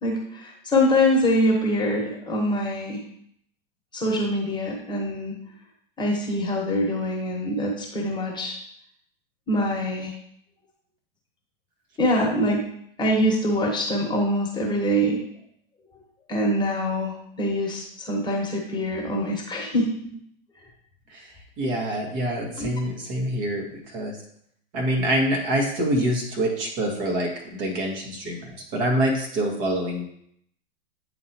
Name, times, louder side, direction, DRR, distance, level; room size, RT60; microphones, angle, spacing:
voice 1, 0.0-3.0 3.9-5.4 6.0-8.6 9.5-10.1 12.0-12.6 13.0-15.2 16.3-20.1 22.6-22.7, equal, 15° left, -1 dB, 1.3 m, -24 dB
voice 2, 21.6-24.2 24.7-30.0, right 1 dB, 50° right, 0 dB, 1.9 m, -26 dB
9.0 x 3.9 x 3.0 m, 0.69 s
figure-of-eight pair, 100°, 30 cm